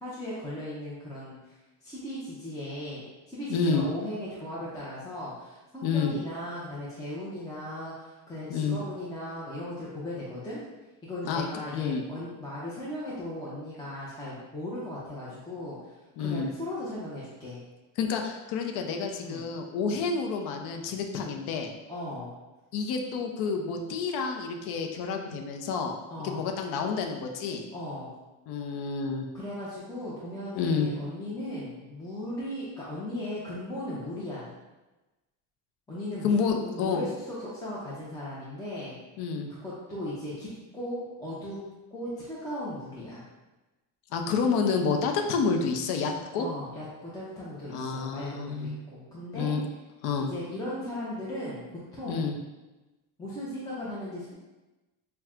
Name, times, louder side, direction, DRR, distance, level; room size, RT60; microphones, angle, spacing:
voice 1, 0.0-10.6 11.0-17.6 19.2-19.4 21.9-22.3 26.1-26.5 27.7-28.1 29.3-34.5 35.9-39.0 39.5-41.6 41.9-43.2 46.4-49.5 50.2-51.6 51.9-52.3 53.2-54.3, left 1 dB, 10° left, -8 dB, 0.5 m, -37 dB
voice 2, 3.5-3.8 5.8-6.1 8.5-8.8 11.3-12.0 16.2-16.5 18.0-21.7 22.7-26.0 26.2-27.6 28.5-29.3 30.5-30.9 36.2-37.0 39.2-39.5 44.1-46.5 47.7-48.8 49.3-49.6 50.0-50.3 52.1-52.3, left 5 dB, 55° left, 3 dB, 0.6 m, -29 dB
5.6 x 2.2 x 2.4 m, 1.1 s
cardioid pair, 125°, 46 cm